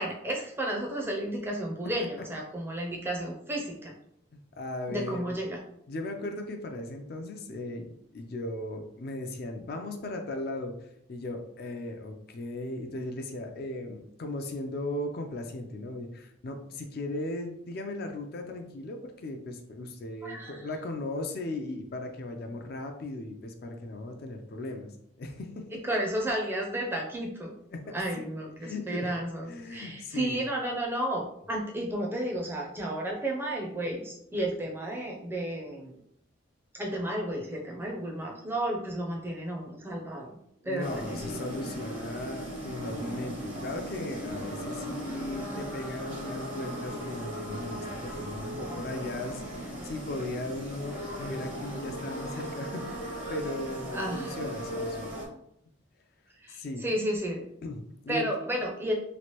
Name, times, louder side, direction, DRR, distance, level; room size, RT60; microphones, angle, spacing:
voice 1, 0.0-3.9 4.9-5.6 20.2-20.6 25.8-27.5 27.9-35.9 36.7-40.4 40.6-41.3 48.6-48.8 53.9-54.4 56.4-57.4 58.1-58.9, right 1 dB, 10° right, -1 dB, 0.4 m, -32 dB
voice 2, 4.3-5.4 5.9-25.7 27.7-28.0 28.6-29.1 29.4-30.4 37.7-37.8 40.6-55.2 56.5-56.8 57.6-58.3, left 2 dB, 50° left, 5 dB, 0.4 m, -37 dB
sound 1, 40.8-55.2, right 1 dB, 75° right, 1.3 m, -37 dB
3.1 x 2.5 x 2.9 m, 0.74 s
head